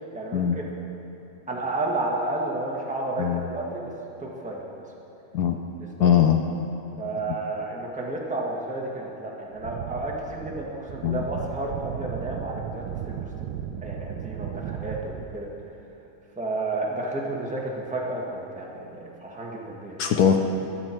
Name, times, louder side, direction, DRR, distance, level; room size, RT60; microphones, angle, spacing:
voice 1, 0.1-0.4 1.5-3.9 4.2-4.7 6.0-6.1 7.0-13.3 13.8-15.5 16.4-20.0, right 2 dB, 5° right, -3 dB, 1.2 m, -31 dB
voice 2, 3.2-3.5 5.3-5.6 6.0-6.4 11.0-11.2 20.0-20.4, left 9 dB, 70° left, 4 dB, 0.9 m, -20 dB
sound 1, 9.5-15.6, right 9 dB, 75° right, 1.1 m, -35 dB
21.5 x 7.7 x 4.5 m, 3.0 s
omnidirectional pair, 2.3 m